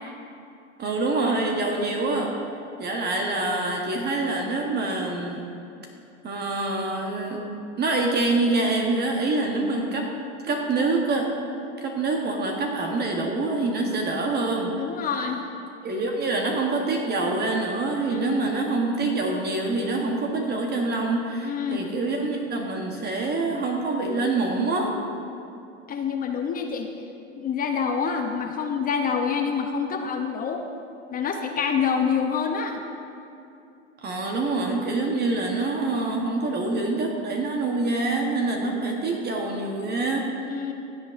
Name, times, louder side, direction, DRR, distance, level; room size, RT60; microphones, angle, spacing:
voice 1, 0.8-2.3 2.8-5.4 6.2-7.4 7.8-10.1 10.4-11.3 11.8-14.7 15.8-24.9 34.0-40.7, right 2 dB, 25° right, 1 dB, 1.0 m, -26 dB
voice 2, 14.8-15.4 18.1-18.4 21.4-21.9 25.9-26.9 27.4-30.7 31.1-32.8 40.5-40.7, left 6 dB, 25° left, 4 dB, 0.6 m, -26 dB
16.0 x 8.2 x 2.5 m, 2.6 s
hypercardioid pair, 110°, 38 cm